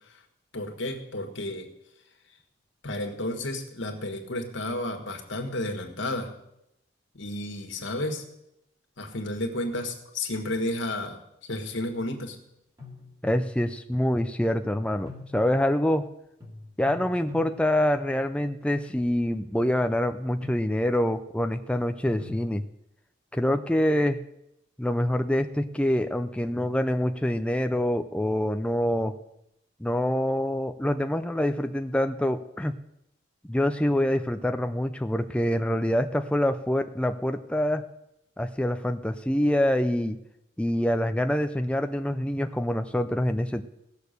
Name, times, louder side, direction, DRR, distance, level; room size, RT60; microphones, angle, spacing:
voice 1, 0.5-1.7 2.8-6.3 7.1-8.2 9.0-11.2 11.5-12.4, left 1 dB, 85° left, 4 dB, 1.8 m, -32 dB
sound 1, 12.1-12.2 12.8-14.0 14.6-16.0 16.4-18.7 19.3-19.6 20.2-21.3 22.2-22.5, left 3 dB, 20° right, 2.3 m, -45 dB
voice 2, 13.2-16.1 16.8-22.6 23.3-24.2 24.8-29.1 29.8-32.7 33.5-37.8 38.4-40.2 40.6-43.6, left 1 dB, 5° left, 8 dB, 0.4 m, -26 dB
17.0 x 6.7 x 6.7 m, 0.82 s
head